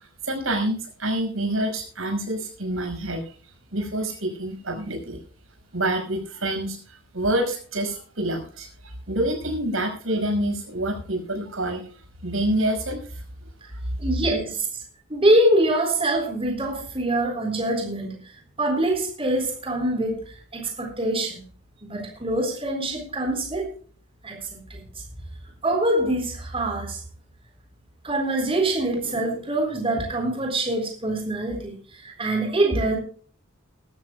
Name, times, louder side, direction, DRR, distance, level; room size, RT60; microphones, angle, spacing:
voice 1, 0.2-3.2 3.7-5.2 5.7-6.8 7.1-11.8 12.2-13.0, right 1 dB, 85° right, 4 dB, 5.3 m, -27 dB
voice 2, 14.0-14.8 15.1-21.4 21.8-23.7 24.2-24.8 25.6-27.0 28.0-33.0, right 1 dB, 30° right, 3 dB, 4.1 m, -24 dB
20.5 x 13.5 x 2.2 m, 0.42 s
head